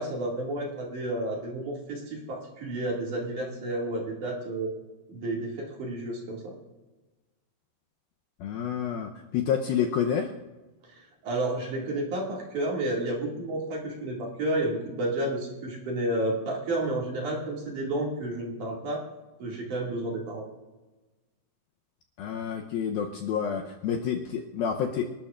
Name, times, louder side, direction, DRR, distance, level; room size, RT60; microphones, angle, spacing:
voice 1, 0.0-4.7 5.1-6.5 10.9-19.0 19.4-20.5, right 1 dB, 50° right, -2 dB, 3.4 m, -31 dB
voice 2, 8.4-10.3 22.2-25.0, left 8 dB, 75° left, 2 dB, 2.3 m, -29 dB
28.0 x 13.0 x 2.5 m, 1.2 s
omnidirectional pair, 5.0 m